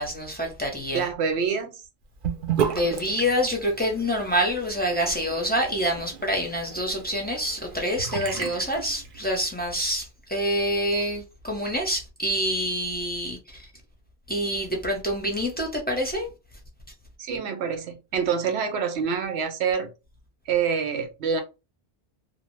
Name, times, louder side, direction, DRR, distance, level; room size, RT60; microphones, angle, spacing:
voice 1, 0.0-1.1 2.7-13.7 14.3-16.3, equal, 15° left, 0.4 m, -27 dB
voice 2, 0.9-1.8 17.2-19.9 20.5-21.4, right 6 dB, 90° right, 0.9 m, -26 dB
Sink (filling or washing) / Bathtub (filling or washing), 2.2-9.5, right 8 dB, 60° right, 0.6 m, -33 dB
2.6 x 2.0 x 3.0 m
omnidirectional pair, 1.1 m